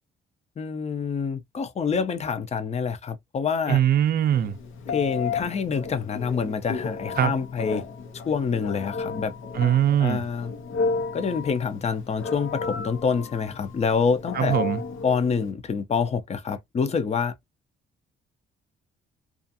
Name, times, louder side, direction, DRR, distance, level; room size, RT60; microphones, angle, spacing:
voice 1, 0.6-3.8 4.9-7.8 8.3-9.3 10.0-10.5 11.1-14.6 15.0-17.3, left 6 dB, 35° left, 0.6 m, -26 dB
voice 2, 3.7-4.6 7.2-7.3 9.5-10.2 14.3-14.8, right 10 dB, 50° right, 0.5 m, -21 dB
Telephone, 4.3-15.5, left 4 dB, 80° left, 0.8 m, -33 dB
2.5 x 2.4 x 2.6 m
cardioid pair, 90°, 20 cm